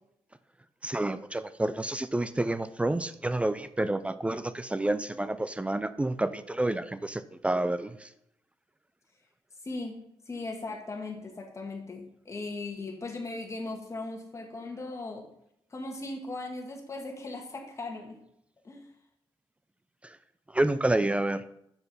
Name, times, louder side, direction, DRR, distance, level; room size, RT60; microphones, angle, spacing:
voice 1, 0.8-8.1 20.5-21.4, right 1 dB, 15° right, 13 dB, 0.4 m, -29 dB
voice 2, 9.6-10.0 10.3-15.3 15.7-18.2 18.6-18.9, left 2 dB, 30° left, 3 dB, 1.9 m, -38 dB
7.2 x 6.6 x 5.6 m, 0.78 s
cardioid pair, 95°, 9 cm